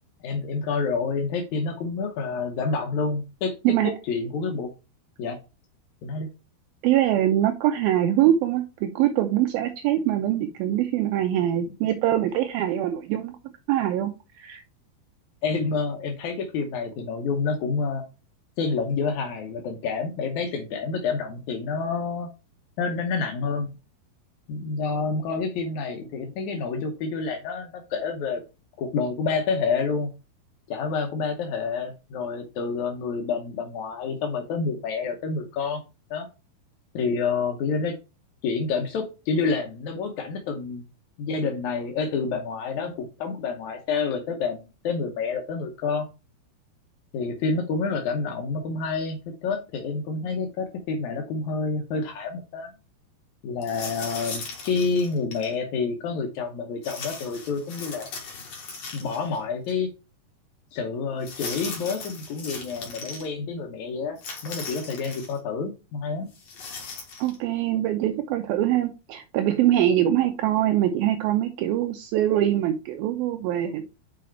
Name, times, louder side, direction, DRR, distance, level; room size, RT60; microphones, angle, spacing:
voice 1, 0.2-3.5 3.8-4.7 5.2-5.4 6.0-6.3 15.4-18.0 18.6-22.3 22.8-23.7 24.5-28.4 28.8-30.1 30.7-35.8 36.1-36.3 36.9-38.0 38.4-40.8 41.2-46.1 47.1-52.7 53.4-58.1 58.9-59.9 60.7-66.3, left 4 dB, 75° left, 3 dB, 1.8 m, -28 dB
voice 2, 6.8-13.4 13.7-14.1 14.4-14.6 67.2-73.8, right 12 dB, 80° right, 6 dB, 2.4 m, -23 dB
sound 1, 53.6-55.5 56.8-59.4 59.7-59.8 61.2-63.3 64.2-65.4 66.3-67.4, left 4 dB, 50° left, 2.4 m, -38 dB
6.3 x 5.0 x 4.4 m, 0.28 s
omnidirectional pair, 4.6 m